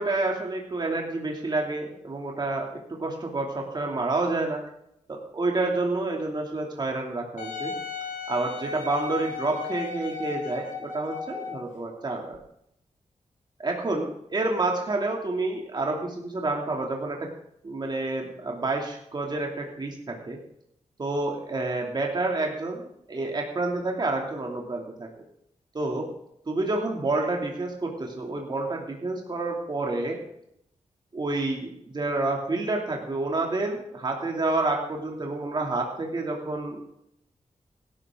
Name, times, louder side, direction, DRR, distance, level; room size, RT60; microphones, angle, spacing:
voice 1, 0.0-4.6 5.1-7.7 8.3-12.4 13.6-17.2 17.6-20.4 21.0-25.1 25.7-26.1 26.5-30.2 31.1-36.9, right 2 dB, 35° right, 0 dB, 2.7 m, -29 dB
Wind instrument woodwind instrument, 7.4-11.7 12.3-12.4, left 6 dB, 90° left, 3.4 m, -35 dB
17.0 x 12.5 x 3.8 m, 0.75 s
wide cardioid pair, 145°, 13 cm